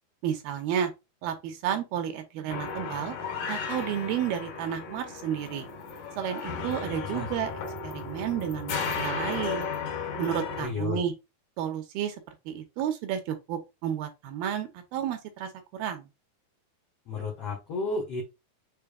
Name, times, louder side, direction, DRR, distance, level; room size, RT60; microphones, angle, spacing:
voice 1, 0.2-0.9 1.2-3.2 3.5-5.7 6.2-7.5 7.8-9.7 10.2-11.1 11.6-12.2 12.5-16.1, right 9 dB, 80° right, 2.4 m, -31 dB
sound 1, 2.5-10.7, left 5 dB, 65° left, 2.4 m, -34 dB
voice 2, 10.6-11.0 17.1-18.2, left 3 dB, 80° left, 1.4 m, -32 dB
6.9 x 3.2 x 2.2 m
omnidirectional pair, 4.6 m